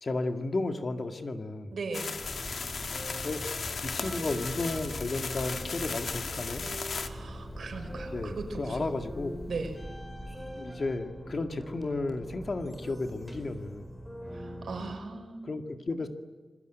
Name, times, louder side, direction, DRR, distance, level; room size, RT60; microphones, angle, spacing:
voice 1, 0.0-1.8 3.2-3.4 3.8-6.7 8.1-9.3 10.6-14.0 15.4-16.1, left 2 dB, 40° left, 7 dB, 2.0 m, -33 dB
voice 2, 1.7-2.2 7.0-8.9 9.5-9.7 14.3-15.4, right 4 dB, 75° right, 6 dB, 5.4 m, -38 dB
sound 1, 1.9-7.1, left 5 dB, 60° left, 1.7 m, -36 dB
sound 2, 2.2-15.0, equal, 10° left, 4.8 m, -42 dB
Guitar, 4.0-9.7, right 2 dB, 40° right, 6.0 m, -51 dB
28.0 x 22.0 x 9.3 m, 1.4 s
wide cardioid pair, 180°, 0 cm